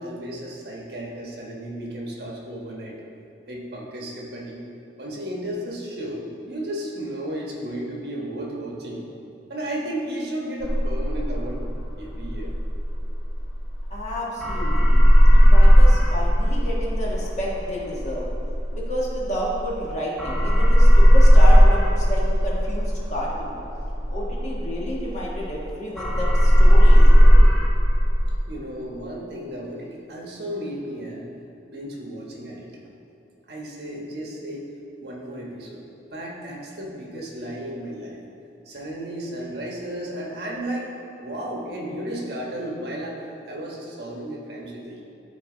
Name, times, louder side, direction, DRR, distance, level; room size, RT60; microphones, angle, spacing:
voice 1, 0.0-3.0 3.5-4.6 5.0-9.1 9.5-11.6 12.0-12.5 28.5-31.3 31.7-32.7 33.5-34.7 35.0-38.2 38.6-40.9 41.2-45.0, right 1 dB, 65° right, -2 dB, 1.3 m, -33 dB
sound 1, 10.6-14.1 14.4-19.9 20.2-25.7 26.0-28.3, equal, ahead, 0.7 m, -15 dB
voice 2, 13.9-15.0 15.3-18.3 18.7-23.6 24.1-27.1, equal, 40° left, -5 dB, 1.4 m, -31 dB
12.0 x 4.4 x 3.9 m, 2.7 s
head